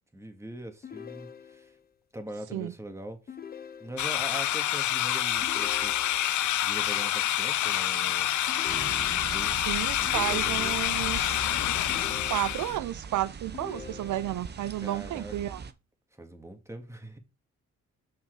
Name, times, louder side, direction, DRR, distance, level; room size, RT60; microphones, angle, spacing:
voice 1, 0.1-1.8 2.1-3.4 3.8-5.9 6.6-8.3 9.1-9.6 10.0-10.9 14.8-15.4 16.1-17.2, right 1 dB, 10° right, 1.9 m, -42 dB
sound 1, 0.8-1.9 3.3-4.3 5.4-6.5 8.5-9.5 10.1-11.0 11.9-12.9 13.5-14.6, left 8 dB, 30° left, 0.7 m, -45 dB
sound 2, 4.0-12.8, left 12 dB, 80° left, 0.7 m, -27 dB
sound 3, 8.7-15.7, right 6 dB, 35° right, 0.9 m, -41 dB
voice 2, 9.7-11.4 12.3-15.6, right 14 dB, 90° right, 0.5 m, -32 dB
7.6 x 5.8 x 4.7 m
cardioid pair, 110°, 29 cm